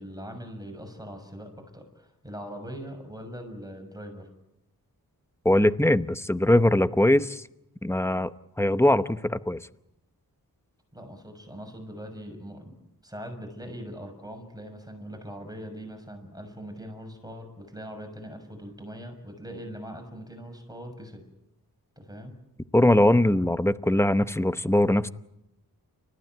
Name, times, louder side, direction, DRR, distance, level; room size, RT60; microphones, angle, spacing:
voice 1, 0.0-4.3 10.9-12.7 13.0-21.2 22.0-22.3, equal, 10° right, 4 dB, 6.4 m, -41 dB
voice 2, 5.4-7.4 7.8-8.3 8.6-9.6 22.7-25.1, left 1 dB, 5° left, 12 dB, 0.9 m, -21 dB
30.0 x 15.0 x 9.2 m, 0.89 s
wide cardioid pair, 75°, 37 cm